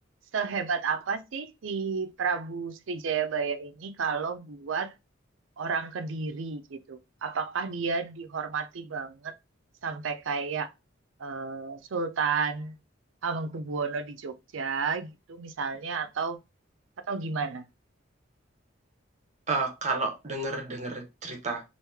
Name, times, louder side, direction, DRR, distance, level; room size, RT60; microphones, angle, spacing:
voice 1, 0.3-4.9 5.6-9.3 9.8-10.7 11.2-12.8 13.2-16.4 17.1-17.6, right 5 dB, 75° right, 0.5 m, -31 dB
voice 2, 19.5-21.6, right 3 dB, 35° right, 0.8 m, -31 dB
3.1 x 2.6 x 3.4 m
head